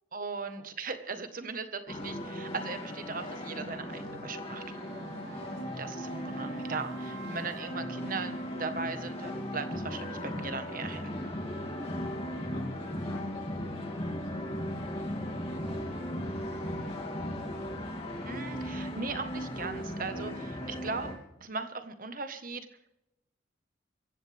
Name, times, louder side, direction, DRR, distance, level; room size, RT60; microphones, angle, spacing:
voice 1, 0.1-4.6 5.8-11.2 18.2-21.1 21.4-22.7, right 4 dB, 50° right, 8 dB, 1.4 m, -38 dB
sound 1, 1.9-21.1, equal, 35° left, 2.8 m, -37 dB
sound 2, 4.4-10.6, right 6 dB, 80° right, 1.2 m, -51 dB
voice 2, 5.5-5.8 11.8-14.7 15.4-16.8 21.3-21.4, left 1 dB, 90° left, 0 dB, 4.5 m, -54 dB
24.5 x 15.5 x 3.5 m, 0.88 s
head